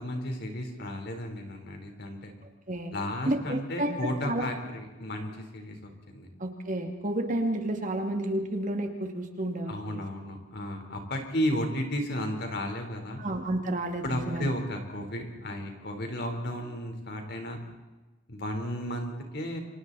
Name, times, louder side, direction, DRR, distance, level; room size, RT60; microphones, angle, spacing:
voice 1, 0.0-2.3 2.9-6.3 9.7-13.2 14.0-17.6 18.3-19.6, equal, 55° left, 4 dB, 3.9 m, -33 dB
voice 2, 3.3-4.4 6.4-9.7 13.2-14.5, right 1 dB, 40° right, 4 dB, 2.4 m, -31 dB
29.0 x 25.5 x 4.1 m, 1.2 s
head